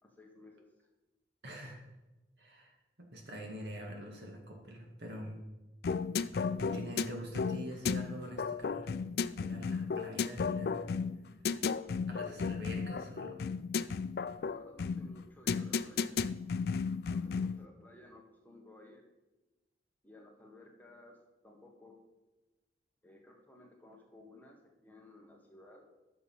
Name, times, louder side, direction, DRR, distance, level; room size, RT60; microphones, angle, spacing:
voice 1, 0.0-0.7 12.2-12.4 14.5-16.2 17.1-19.1 20.0-21.2 21.4-22.0 23.0-25.9, left 2 dB, 10° left, 0 dB, 1.3 m, -56 dB
voice 2, 1.4-1.8 2.4-2.7 3.0-5.4 6.3-8.9 9.4-10.8 12.1-13.4, equal, 75° right, 1 dB, 2.0 m, -45 dB
sound 1, 5.8-17.7, left 5 dB, 60° left, 0.4 m, -34 dB
10.5 x 6.8 x 5.6 m, 1.1 s
head